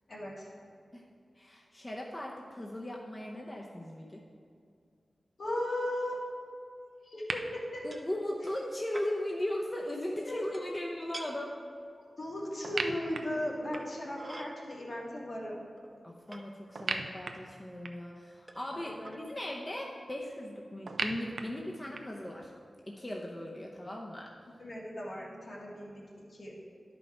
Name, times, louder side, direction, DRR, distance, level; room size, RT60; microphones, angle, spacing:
voice 1, 0.1-0.5 5.4-6.2 7.0-7.9 10.1-10.7 12.2-15.7 18.7-19.2 24.4-26.0 26.3-26.6, left 1 dB, 70° left, -5 dB, 2.0 m, -37 dB
voice 2, 1.4-4.2 7.8-11.5 16.0-22.5 22.9-24.3, left 1 dB, 25° left, -2 dB, 0.7 m, -38 dB
sound 1, 7.3-7.4 12.6-14.1 16.8-18.2 20.9-22.3, right 3 dB, 80° right, 0.5 m, -37 dB
sound 2, 7.9-8.1 8.5-8.7 8.9-9.1 10.5-10.8 11.1-11.3 12.5-12.6 13.7-14.5 15.3-15.4 15.8-16.4 17.3-17.4 18.5-18.7 19.0-19.2, right 1 dB, 20° right, 0.8 m, -46 dB
10.5 x 5.5 x 4.3 m, 2.3 s
wide cardioid pair, 80°, 0 cm